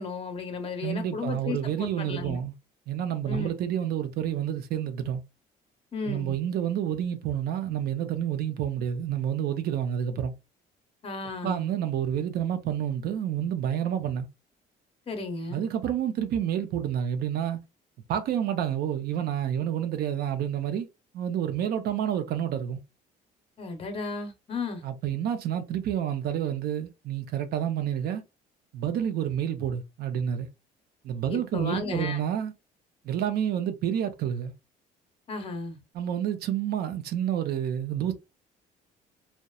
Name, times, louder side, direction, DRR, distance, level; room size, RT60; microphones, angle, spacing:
voice 1, 0.0-2.4 3.3-3.5 5.9-6.4 11.0-11.7 15.1-15.6 23.6-24.8 31.3-32.2 35.3-35.8, left 3 dB, 35° left, 0.8 m, -34 dB
voice 2, 0.8-2.5 2.9-5.2 6.0-10.3 11.4-14.3 15.5-17.6 18.1-20.9 21.1-22.8 24.8-28.2 28.7-30.5 31.0-32.5 33.0-34.5 35.9-38.1, right 9 dB, 65° right, 0.6 m, -29 dB
2.8 x 2.1 x 2.3 m
cardioid pair, 110°, 17 cm